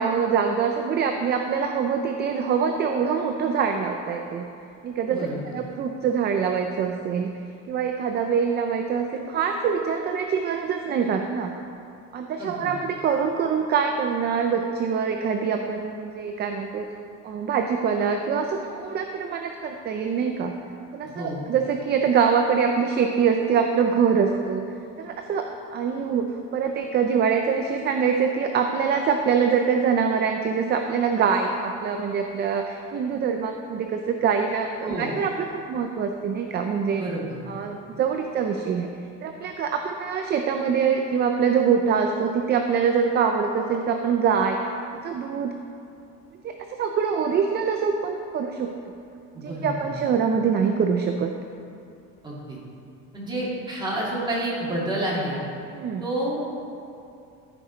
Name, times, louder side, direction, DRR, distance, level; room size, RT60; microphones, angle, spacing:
voice 1, 0.0-4.5 4.8-5.2 5.5-7.3 7.7-11.5 12.1-16.9 17.2-20.5 20.9-24.6 25.0-25.5 25.7-37.0 37.5-38.9 39.2-44.7 45.0-45.5 46.4-48.7 49.4-51.3 55.7-56.0, right 6 dB, 35° right, 4 dB, 0.4 m, -24 dB
voice 2, 5.1-5.4 12.4-12.7 21.1-21.5 34.8-35.1 37.0-37.4 49.3-49.9 52.2-52.6 53.1-55.4 56.0-56.5, right 1 dB, 15° right, -6 dB, 2.1 m, -29 dB
14.5 x 5.0 x 4.0 m, 2.6 s
cardioid pair, 150°, 32 cm